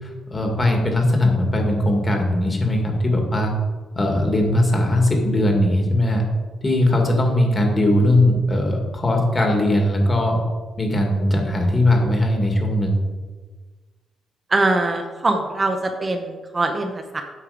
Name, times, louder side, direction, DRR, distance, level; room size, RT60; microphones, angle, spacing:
voice 1, 0.0-3.5 4.0-6.2 6.6-10.4 10.8-12.9, left 1 dB, 25° left, 2 dB, 2.1 m, -19 dB
voice 2, 14.5-17.2, right 2 dB, 25° right, 4 dB, 0.9 m, -22 dB
8.5 x 6.4 x 5.1 m, 1.4 s
cardioid pair, 100°, 0 cm